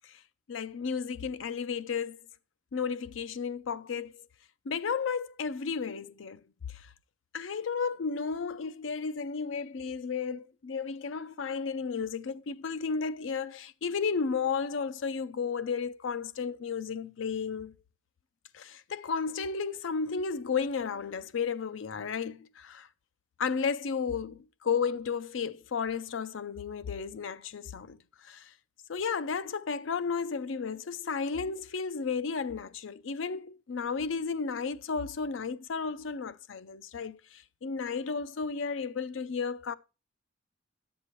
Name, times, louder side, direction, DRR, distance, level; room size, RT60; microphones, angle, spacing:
voice 1, 0.5-2.2 2.7-4.3 4.7-6.4 6.7-6.9 7.3-17.7 18.5-22.9 23.4-28.5 28.9-39.7, left 5 dB, 90° left, 0.5 m, -33 dB
10.5 x 7.2 x 3.0 m
head